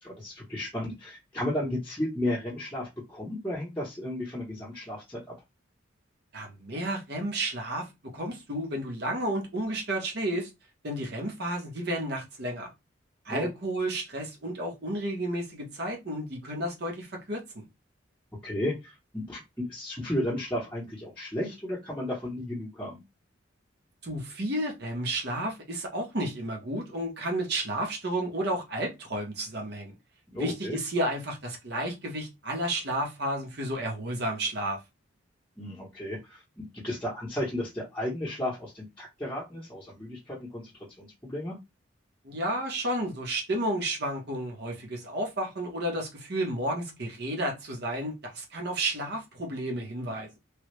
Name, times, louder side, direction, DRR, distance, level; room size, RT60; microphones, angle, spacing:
voice 1, 0.0-5.3 13.3-13.5 18.4-23.0 30.3-30.8 35.6-40.7 41.0-41.6, left 1 dB, 10° left, 1.0 m, -34 dB
voice 2, 6.3-7.9 8.1-10.5 10.8-12.7 13.2-17.7 24.0-29.9 30.4-34.8 42.2-50.3, right 1 dB, 55° right, 1.1 m, -32 dB
3.3 x 2.4 x 3.1 m
head